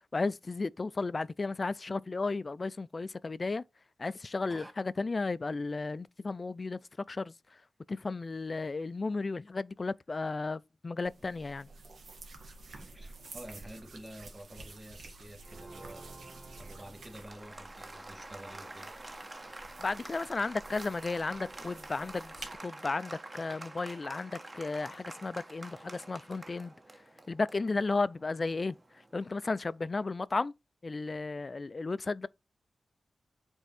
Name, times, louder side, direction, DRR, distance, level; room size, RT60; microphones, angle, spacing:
voice 1, 0.1-3.6 4.0-6.8 7.1-7.3 7.9-11.7 19.8-26.7 27.3-28.8 29.1-30.5 30.8-32.3, left 3 dB, 40° left, 0.4 m, -34 dB
sound 1, 11.0-22.5, right 3 dB, 85° right, 1.7 m, -51 dB
voice 2, 12.7-16.2 16.6-18.9, right 1 dB, 15° right, 1.8 m, -49 dB
Applause, 15.4-29.8, right 2 dB, 30° right, 1.1 m, -48 dB
8.2 x 3.5 x 4.2 m
cardioid pair, 75°, 0 cm